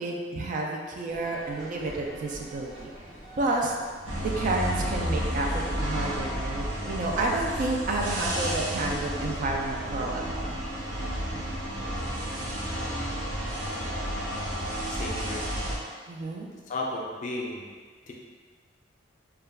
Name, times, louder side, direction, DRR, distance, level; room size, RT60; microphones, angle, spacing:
voice 1, 0.0-2.9 3.4-3.8 4.2-10.6 11.3-11.4 16.1-16.5, right 2 dB, 40° right, 0 dB, 0.3 m, -30 dB
sound 1, 1.1-7.6, right 2 dB, 25° right, 0.8 m, -45 dB
sound 2, 4.0-15.8, equal, 80° right, 0.7 m, -31 dB
voice 2, 14.9-15.5 16.7-17.6 18.1-18.2, left 2 dB, 40° left, -2 dB, 0.4 m, -34 dB
2.3 x 2.1 x 3.4 m, 1.6 s
head